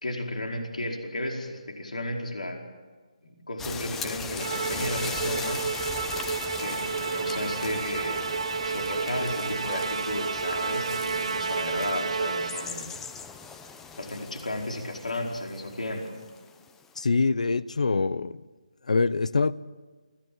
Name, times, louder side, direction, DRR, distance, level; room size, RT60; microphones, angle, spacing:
voice 1, 0.0-2.6 3.2-5.6 6.6-8.3 8.6-12.9 14.0-16.1, left 1 dB, 85° left, 4.7 m, -34 dB
sound 1, 3.6-17.0, left 5 dB, 10° left, 0.8 m, -39 dB
Musical instrument, 4.4-12.9, right 5 dB, 55° right, 1.0 m, -31 dB
sound 2, 4.5-12.2, left 6 dB, 25° left, 4.9 m, -53 dB
voice 2, 17.0-18.4 18.8-19.5, left 4 dB, 70° left, 0.8 m, -24 dB
26.0 x 17.5 x 7.7 m
figure-of-eight pair, 160°, 4 cm